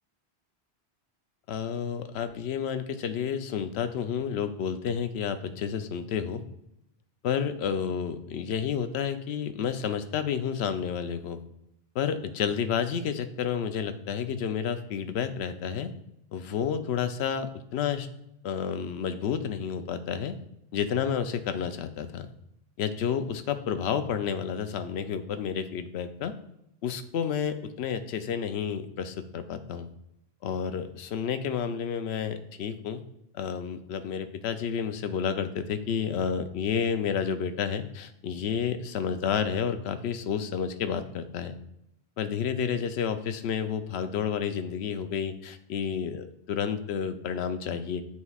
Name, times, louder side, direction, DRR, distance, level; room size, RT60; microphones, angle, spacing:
voice 1, 1.5-6.4 7.2-11.4 11.9-15.9 16.3-18.1 18.4-20.3 20.7-22.3 22.8-26.3 26.8-29.9 30.4-33.0 33.3-41.5 42.2-46.2 46.5-48.0, left 7 dB, 80° left, 9 dB, 0.8 m, -30 dB
9.7 x 4.1 x 2.4 m, 0.80 s
omnidirectional pair, 1.1 m